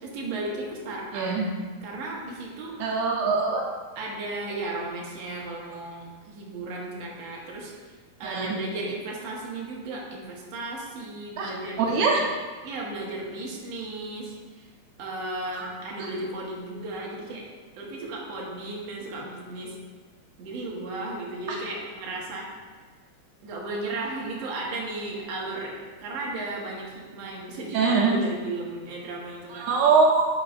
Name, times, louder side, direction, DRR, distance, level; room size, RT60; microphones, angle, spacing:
voice 1, 0.0-1.3 1.8-2.8 4.0-7.7 8.2-12.1 12.6-14.7 15.0-17.5 17.8-19.8 20.4-22.5 23.4-29.7, right 2 dB, 60° right, -3 dB, 2.2 m, -35 dB
voice 2, 1.1-1.4 2.8-3.6 8.2-8.5 11.4-11.5 11.8-12.2 15.5-15.7 27.7-28.2 29.5-30.3, right 4 dB, 85° right, -1 dB, 2.3 m, -22 dB
9.6 x 6.0 x 2.5 m, 1.5 s
omnidirectional pair, 3.4 m